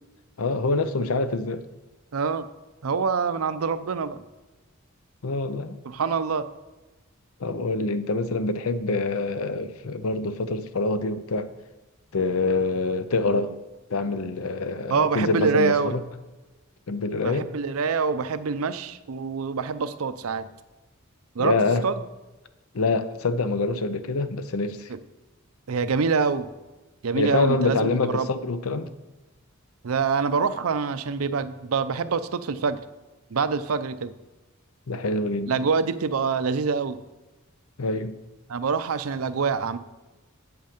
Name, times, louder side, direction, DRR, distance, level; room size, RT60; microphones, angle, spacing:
voice 1, 0.4-1.6 5.2-5.8 7.4-11.5 12.1-13.5 13.9-16.0 16.9-17.5 21.4-21.9 22.7-24.9 27.1-28.9 34.9-35.7 37.8-38.1, left 3 dB, 85° left, 0.7 m, -25 dB
voice 2, 2.1-2.5 2.8-4.2 5.9-6.5 14.9-15.9 17.2-20.5 21.4-21.6 21.8-22.0 24.9-25.0 25.7-26.5 27.0-28.3 29.8-32.8 33.3-34.1 35.5-37.0 38.5-39.8, right 5 dB, 85° right, 0.5 m, -25 dB
8.0 x 7.9 x 5.1 m
head